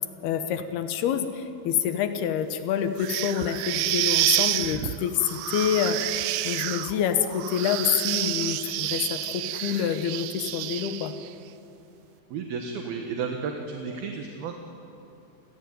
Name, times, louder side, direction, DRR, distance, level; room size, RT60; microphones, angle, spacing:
voice 1, 0.2-11.1, left 9 dB, 80° left, 9 dB, 3.1 m, -27 dB
sound 1, 3.0-11.3, right 14 dB, 90° right, 2.8 m, -29 dB
voice 2, 12.3-14.6, right 5 dB, 75° right, 3 dB, 3.3 m, -32 dB
29.0 x 17.0 x 9.4 m, 2.8 s
omnidirectional pair, 4.5 m